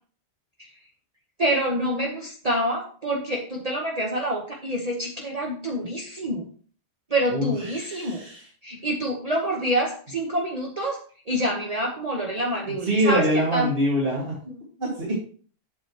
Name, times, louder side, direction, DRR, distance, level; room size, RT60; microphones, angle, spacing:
voice 1, 1.4-6.4 7.1-8.2 8.6-11.0 11.3-13.2 13.5-13.7 14.5-14.6, right 1 dB, 35° right, -1 dB, 1.2 m, -27 dB
voice 2, 7.3-8.4 12.8-14.4 14.8-15.2, equal, 50° right, -4 dB, 2.3 m, -24 dB
8.7 x 6.9 x 3.0 m, 0.43 s
omnidirectional pair, 1.2 m